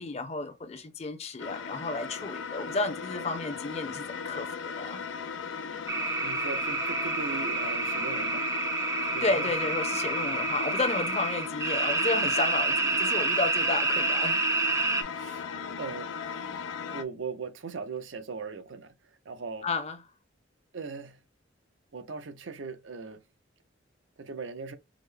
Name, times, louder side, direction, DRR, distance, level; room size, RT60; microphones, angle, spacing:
voice 1, 0.0-5.0 9.2-14.4 19.6-20.0, left 3 dB, 35° left, 0.6 m, -32 dB
sound 1, 1.4-17.0, left 6 dB, 80° left, 0.5 m, -37 dB
sound 2, 5.9-15.0, right 3 dB, 15° right, 0.5 m, -28 dB
voice 2, 6.2-8.5 9.0-9.5 15.1-15.4 15.8-16.1 16.7-18.9 19.3-19.7 20.7-21.2 21.9-23.2 24.2-24.8, right 4 dB, 90° right, 0.6 m, -39 dB
5.0 x 2.0 x 3.2 m
head